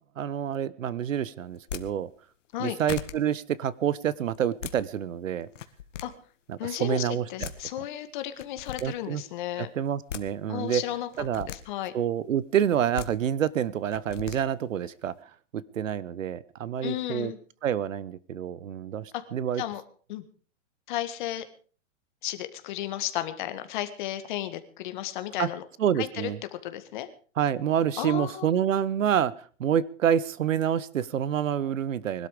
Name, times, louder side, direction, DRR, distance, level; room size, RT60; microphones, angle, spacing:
voice 1, 0.2-2.1 2.6-5.5 6.5-7.5 8.8-9.2 9.6-10.8 11.2-11.5 11.9-15.1 15.5-17.3 17.6-19.6 25.4-25.5 25.8-26.4 27.4-29.3 29.6-32.3, right 9 dB, 85° right, 20 dB, 1.2 m, -27 dB
sound 1, 1.5-1.8 2.5-2.6 2.9-3.1 4.3-4.8 5.5-6.0 7.1-7.2 7.4-7.6 8.4-8.8 9.8-10.2 11.1-11.6 12.7-13.1 13.9-14.4, left 10 dB, 70° left, 1.8 m, -37 dB
voice 2, 6.6-9.7 10.5-11.1 11.4-11.9 16.8-17.4 19.1-19.2 19.6-19.8 20.1-20.2 20.9-21.4 22.2-25.6 26.0-26.3 26.6-27.1 28.0-28.5, left 13 dB, 40° left, 10 dB, 1.8 m, -33 dB
21.5 x 12.5 x 5.0 m, 0.42 s
hypercardioid pair, 160°, 38 cm